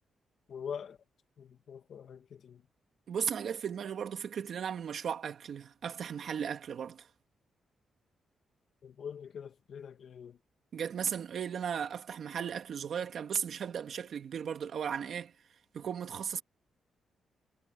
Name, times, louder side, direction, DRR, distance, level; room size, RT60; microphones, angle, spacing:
voice 1, 0.5-1.0 1.4-2.6 8.8-10.4, left 7 dB, 55° left, 2.2 m, -44 dB
voice 2, 3.1-7.1 10.7-15.3 15.7-16.4, right 7 dB, 55° right, 2.5 m, -36 dB
wide cardioid pair, 160°, 0 cm